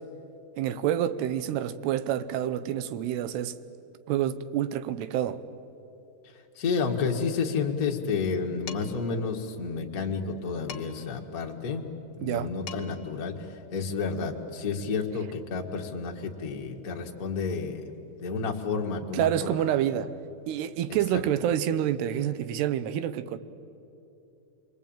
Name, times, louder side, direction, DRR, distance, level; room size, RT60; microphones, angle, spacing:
voice 1, 0.6-3.5 4.1-5.4 12.2-12.5 19.1-20.1 20.5-23.4, right 11 dB, 90° right, 3.0 m, -28 dB
voice 2, 6.5-11.9 12.2-17.8 18.2-19.6 21.1-21.2, left 5 dB, 60° left, 0.9 m, -30 dB
Dishes pots and pans, 8.7-9.1 10.7-11.2 12.3-12.4 12.7-13.1, left 7 dB, 75° left, 1.2 m, -42 dB
28.0 x 23.0 x 8.9 m
omnidirectional pair, 4.6 m